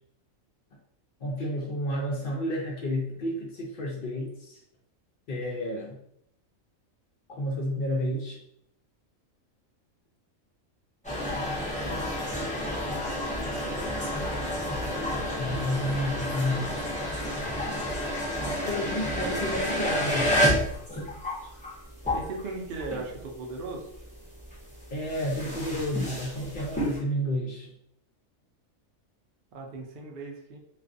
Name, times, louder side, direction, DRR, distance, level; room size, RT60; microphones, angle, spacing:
voice 1, 1.2-4.6 5.3-6.0 7.3-8.4 15.4-16.9 18.7-20.7 24.9-27.7, left 1 dB, 65° left, -3 dB, 0.5 m, -31 dB
sound 1, 11.0-23.3 23.6-27.0, equal, 10° left, 0.4 m, -30 dB
voice 2, 22.1-23.9 29.5-30.6, right 3 dB, 70° right, 0 dB, 0.5 m, -37 dB
2.4 x 2.3 x 2.5 m, 0.74 s
omnidirectional pair, 1.4 m